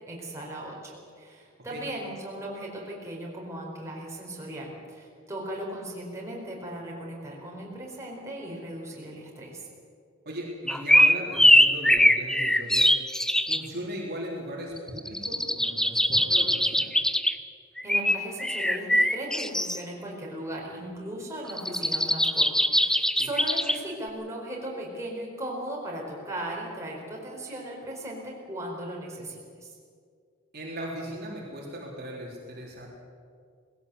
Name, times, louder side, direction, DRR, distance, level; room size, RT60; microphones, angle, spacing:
voice 1, 0.1-9.7 17.8-29.7, right 1 dB, 15° right, -3 dB, 4.8 m, -37 dB
voice 2, 10.3-12.9 13.4-16.9 23.2-23.3 30.5-32.9, equal, 50° right, -3 dB, 3.7 m, -38 dB
sound 1, 10.7-13.7 14.8-17.4 17.8-19.8 21.5-23.8, left 1 dB, 5° left, 0.6 m, -22 dB
20.0 x 16.5 x 8.0 m, 2.2 s
head